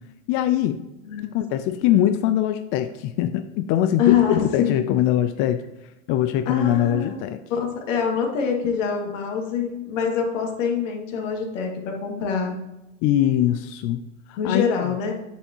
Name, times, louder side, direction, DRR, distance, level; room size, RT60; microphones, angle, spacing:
voice 1, 0.3-0.8 1.2-5.6 6.1-7.4 13.0-14.0 14.3-14.7, left 11 dB, 35° left, 9 dB, 0.4 m, -22 dB
voice 2, 4.0-4.7 6.5-7.2 7.5-12.6 14.4-15.1, left 7 dB, 65° left, 1 dB, 2.3 m, -24 dB
9.0 x 7.0 x 2.9 m, 0.95 s
hypercardioid pair, 120°, 41 cm